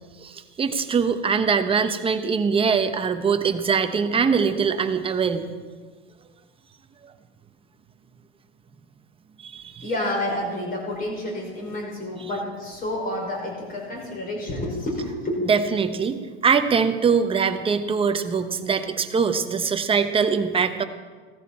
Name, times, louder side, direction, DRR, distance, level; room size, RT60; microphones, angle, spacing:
voice 1, 0.2-5.5 9.4-9.9 15.5-20.8, right 6 dB, 15° right, 8 dB, 0.9 m, -22 dB
voice 2, 9.8-15.5, left 1 dB, 25° left, -2 dB, 5.5 m, -29 dB
16.5 x 13.5 x 4.3 m, 1.5 s
supercardioid pair, 120°, 33 cm